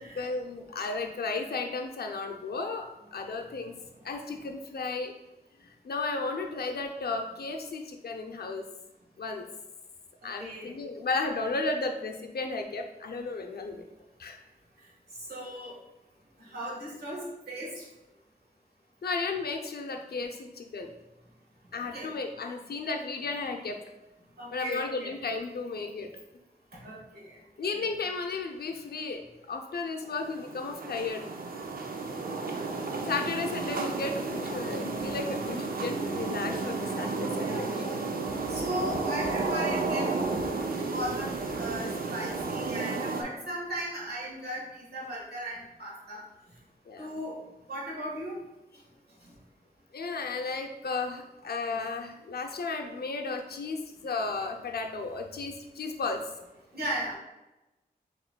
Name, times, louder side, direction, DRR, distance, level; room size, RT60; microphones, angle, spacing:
voice 1, 0.2-3.7 4.0-5.1 5.6-8.6 9.2-9.4 10.2-13.9 14.2-14.4 19.0-20.9 21.7-23.8 24.5-26.1 27.6-29.2 29.5-31.2 33.1-37.8 38.4-38.5 45.0-45.1 46.9-47.1 49.9-56.2, left 3 dB, 80° left, 3 dB, 0.5 m, -34 dB
voice 2, 10.4-10.7 15.3-15.8 16.5-17.8 21.9-22.1 24.4-25.1 26.8-27.0 37.4-38.1 38.5-41.3 41.5-46.2 47.0-47.4 47.7-48.3 56.7-57.2, right 1 dB, 90° right, -5 dB, 1.5 m, -37 dB
sound 1, 30.0-43.2, right 3 dB, 65° right, 0.5 m, -32 dB
6.5 x 3.0 x 2.2 m, 1.0 s
wide cardioid pair, 70°, 16 cm